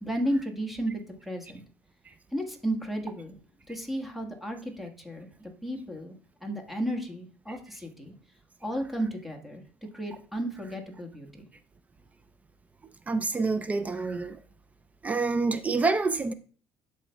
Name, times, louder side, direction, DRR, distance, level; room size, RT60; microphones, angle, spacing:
voice 1, 0.0-1.6 2.3-3.4 3.7-6.1 6.4-8.1 8.6-9.6 9.9-11.5, right 1 dB, ahead, 1.5 m, -33 dB
voice 2, 13.1-14.4 15.0-16.3, right 3 dB, 25° right, 0.4 m, -28 dB
12.0 x 4.2 x 2.3 m
supercardioid pair, 95°, 6 cm